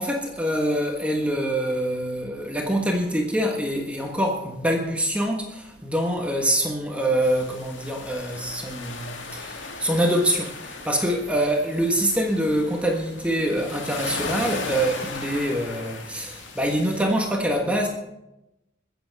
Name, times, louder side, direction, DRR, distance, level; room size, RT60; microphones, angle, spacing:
voice 1, 0.0-17.9, right 1 dB, 5° right, 1 dB, 1.4 m, -25 dB
sound 1, 7.2-17.0, left 3 dB, 80° left, 2.3 m, -37 dB
22.0 x 8.2 x 4.7 m, 0.90 s
head